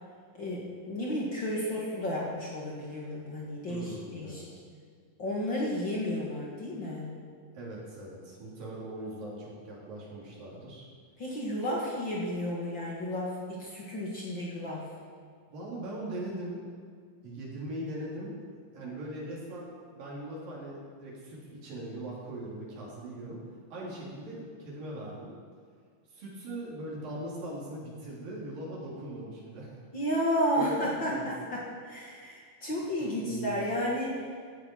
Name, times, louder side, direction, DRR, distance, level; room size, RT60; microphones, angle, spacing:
voice 1, 0.4-4.5 5.2-7.1 11.2-14.9 29.9-34.2, equal, 40° left, -4 dB, 2.2 m, -32 dB
voice 2, 3.7-4.5 7.5-10.9 15.5-16.6 17.2-18.4 18.7-23.4 23.7-25.3 26.1-29.8 30.5-31.2 33.0-33.6, right 1 dB, 80° right, -5 dB, 5.0 m, -40 dB
16.0 x 11.0 x 4.6 m, 2.1 s
omnidirectional pair, 3.9 m